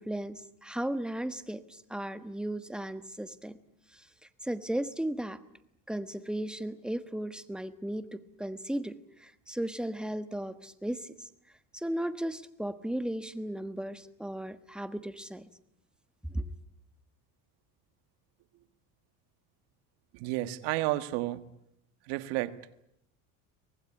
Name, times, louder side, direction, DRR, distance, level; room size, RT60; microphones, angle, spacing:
voice 1, 0.0-3.6 3.9-4.1 4.4-5.4 5.9-11.3 11.7-15.4 16.3-16.5, right 1 dB, ahead, 11 dB, 1.3 m, -35 dB
voice 2, 20.1-21.4 22.0-22.6, right 17 dB, 80° right, 12 dB, 1.7 m, -31 dB
24.5 x 19.0 x 9.9 m, 0.77 s
cardioid pair, 120°, 41 cm